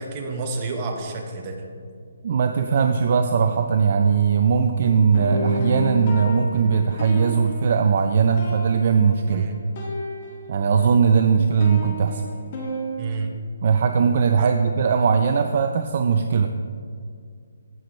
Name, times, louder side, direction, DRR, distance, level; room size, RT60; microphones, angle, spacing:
voice 1, 0.0-1.6 9.3-9.6 13.0-13.3 14.4-14.5, right 3 dB, 25° right, 2 dB, 1.0 m, -30 dB
voice 2, 2.2-9.5 10.5-12.2 13.6-16.5, right 6 dB, 45° right, 6 dB, 0.4 m, -19 dB
sound 1, 5.1-10.9 11.2-13.0, left 1 dB, 35° left, 1.9 m, -31 dB
16.0 x 6.1 x 3.1 m, 2.2 s
hypercardioid pair, 160°, 0 cm